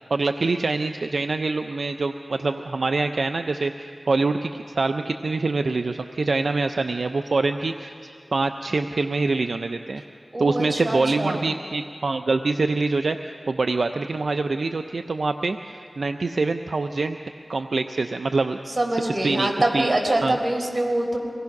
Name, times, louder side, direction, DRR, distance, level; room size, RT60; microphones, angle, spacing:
voice 1, 0.1-10.0 10.4-17.2 17.5-18.6 18.9-19.9 20.2-20.4, right 3 dB, 80° right, 7 dB, 0.5 m, -25 dB
voice 2, 10.3-11.4 18.8-21.2, right 1 dB, 50° right, 2 dB, 4.1 m, -24 dB
25.0 x 18.5 x 5.9 m, 2.4 s
wide cardioid pair, 45°, 0 cm